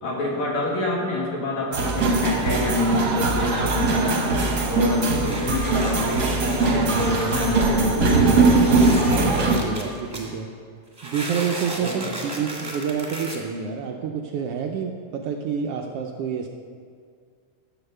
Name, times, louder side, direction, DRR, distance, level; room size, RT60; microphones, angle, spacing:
voice 1, 0.0-4.3 4.7-8.5 9.2-9.4 11.8-12.2, left 1 dB, 70° left, -3 dB, 3.1 m, -27 dB
sound 1, 1.7-9.6, right 3 dB, 50° right, 1.3 m, -21 dB
sound 2, 5.2-10.3 11.0-13.4, right 1 dB, 10° right, 1.3 m, -35 dB
voice 2, 9.3-10.5 11.0-16.5, right 7 dB, 75° right, 3 dB, 1.4 m, -28 dB
12.0 x 8.1 x 6.7 m, 2.1 s
omnidirectional pair, 3.3 m